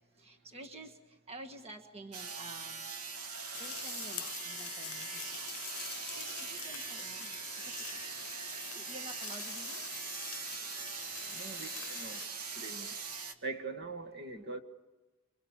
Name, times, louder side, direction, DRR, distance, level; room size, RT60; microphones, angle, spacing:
voice 1, 0.2-2.9 3.6-5.5 6.1-7.9 8.7-9.8, right 2 dB, 30° right, 3 dB, 1.5 m, -50 dB
sound 1, 2.1-13.3, right 5 dB, 80° right, 2.0 m, -42 dB
sound 2, 3.5-12.2, left 13 dB, 65° left, 0.8 m, -46 dB
voice 2, 11.3-12.2 12.6-12.9 13.4-14.6, right 3 dB, 50° right, 6 dB, 1.9 m, -42 dB
27.0 x 26.5 x 7.4 m, 1.2 s
head